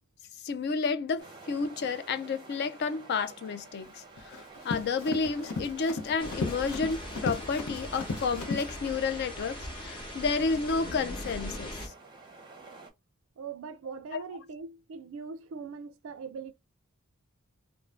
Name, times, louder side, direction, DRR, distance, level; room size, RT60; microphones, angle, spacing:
voice 1, 0.4-4.4 4.6-11.9 14.1-14.2, left 4 dB, 50° left, 0.3 m, -31 dB
sound 1, 1.2-12.9, right 3 dB, 20° right, 0.6 m, -51 dB
Run, 3.9-8.7, left 3 dB, 85° left, 0.7 m, -36 dB
sound 2, 6.2-11.9, left 1 dB, 25° left, 0.8 m, -40 dB
voice 2, 13.4-16.5, right 5 dB, 65° right, 0.3 m, -41 dB
2.5 x 2.0 x 3.1 m
head